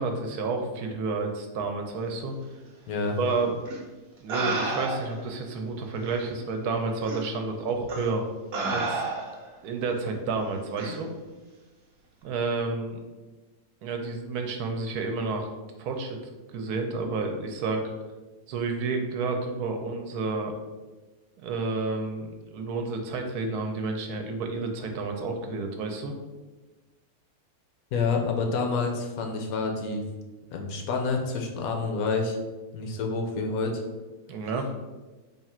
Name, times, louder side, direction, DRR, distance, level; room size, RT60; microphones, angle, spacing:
voice 1, 0.0-2.3 3.2-3.6 4.2-8.2 8.7-9.0 9.6-11.1 12.2-13.0 13.8-15.5 15.8-16.2 16.5-17.8 18.5-20.5 21.4-26.1 34.3-34.7, right 3 dB, 85° right, 4 dB, 1.1 m, -30 dB
voice 2, 2.9-3.2 27.9-30.0 30.5-32.4 32.7-33.8, left 4 dB, 70° left, 2 dB, 1.0 m, -28 dB
sound 1, 3.7-3.8 4.3-5.2 6.1-6.2 7.1-7.2 7.9-8.1 8.5-9.5 10.8-11.0, right 3 dB, 55° right, 0.8 m, -30 dB
3.5 x 2.4 x 4.2 m, 1.2 s
omnidirectional pair, 1.6 m